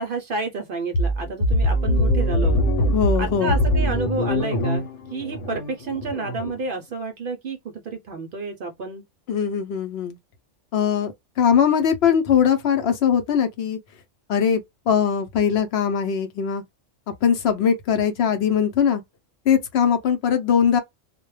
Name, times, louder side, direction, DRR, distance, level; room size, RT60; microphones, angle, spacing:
voice 1, 0.0-2.6 3.2-4.8 5.1-9.0, right 3 dB, 60° right, 0.6 m, -30 dB
sound 1, 0.9-6.6, equal, 85° left, 1.0 m, -22 dB
voice 2, 2.9-3.5 9.3-10.2 10.7-13.8 14.3-14.6 14.9-16.6 17.2-19.0 19.5-20.8, left 7 dB, 65° left, 0.8 m, -21 dB
2.2 x 2.1 x 3.0 m
omnidirectional pair, 1.2 m